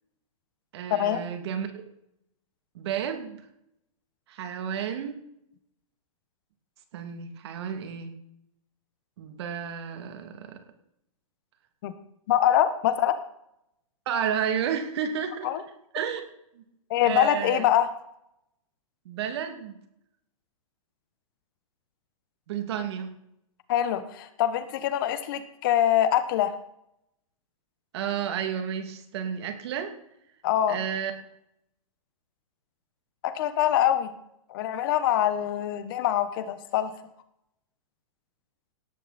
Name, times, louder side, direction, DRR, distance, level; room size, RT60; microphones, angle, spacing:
voice 1, 0.7-1.9 2.7-3.4 4.3-5.2 6.9-8.1 9.2-10.6 14.1-15.6 15.9-16.3 16.5-16.6 17.0-17.6 19.0-19.8 22.5-23.1 27.9-29.9 30.7-31.1, right 8 dB, 50° right, 7 dB, 2.8 m, -31 dB
voice 2, 12.3-13.2 15.4-15.6 16.9-17.9 23.7-26.5 30.4-30.8 33.2-34.1 34.5-36.9, left 11 dB, 40° left, 12 dB, 1.3 m, -24 dB
18.5 x 13.0 x 4.4 m, 0.78 s
hypercardioid pair, 165°, 18 cm